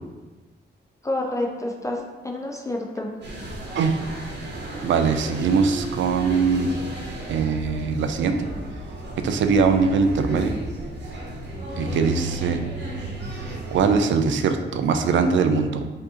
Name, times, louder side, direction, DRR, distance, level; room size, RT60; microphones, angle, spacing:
voice 1, 1.0-3.1, left 1 dB, 15° left, 0 dB, 0.3 m, -29 dB
sound 1, 3.2-14.0, right 1 dB, 65° right, 1.0 m, -34 dB
voice 2, 4.8-6.7 7.3-8.5 9.2-10.5 11.8-12.6 13.3-13.4 13.7-15.8, right 5 dB, 85° right, 7 dB, 0.4 m, -21 dB
4.8 x 2.8 x 3.7 m, 1.3 s
wide cardioid pair, 145°, 19 cm